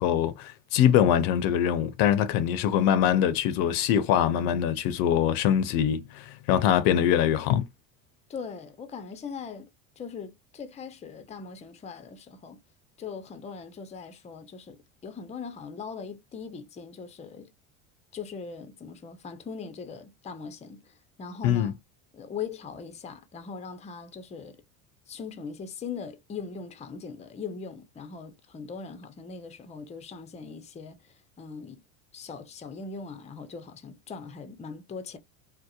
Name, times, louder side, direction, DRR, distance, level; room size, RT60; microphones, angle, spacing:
voice 1, 0.0-7.6 21.4-21.7, left 10 dB, 60° left, 0.6 m, -23 dB
voice 2, 8.3-9.7 10.0-12.6 13.0-17.5 18.1-21.8 22.1-24.6 25.1-31.8 32.1-35.2, left 5 dB, 15° left, 0.5 m, -40 dB
2.8 x 2.0 x 2.3 m
hypercardioid pair, 85°, 39 cm